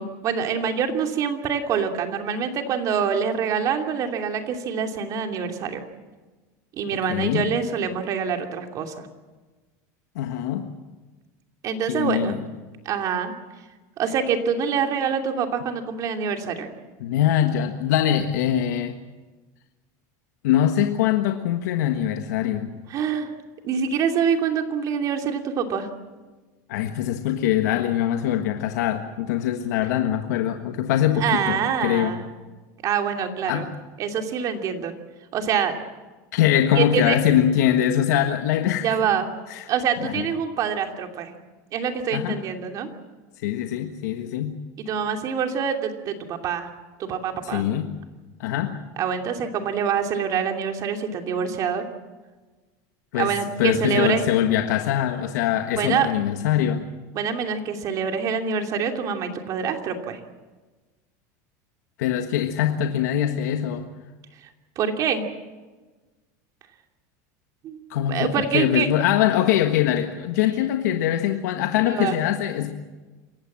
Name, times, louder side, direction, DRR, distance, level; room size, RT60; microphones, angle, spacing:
voice 1, 0.0-5.8 6.7-9.1 11.6-12.4 12.8-13.3 14.0-16.7 22.9-23.3 23.6-25.9 31.2-32.2 32.8-33.7 34.0-34.9 35.3-35.7 36.8-37.2 38.8-39.3 39.7-41.3 41.7-42.9 44.8-46.7 47.0-47.7 49.0-51.8 53.1-54.3 55.8-56.1 57.1-60.2 64.8-65.2 67.6-67.8 68.1-68.9 71.9-72.2, right 7 dB, 40° right, 4 dB, 2.8 m, -25 dB
voice 2, 7.1-7.5 10.1-10.7 11.9-12.4 17.0-19.0 20.4-22.7 26.7-32.1 33.5-33.7 36.3-38.9 39.5-39.7 40.0-40.2 42.1-42.4 43.4-44.6 47.4-47.9 48.4-48.8 53.1-53.3 53.6-56.8 62.0-63.9 67.9-72.7, left 11 dB, 85° left, 5 dB, 1.5 m, -23 dB
27.0 x 16.0 x 7.6 m, 1.2 s
supercardioid pair, 145°, 9 cm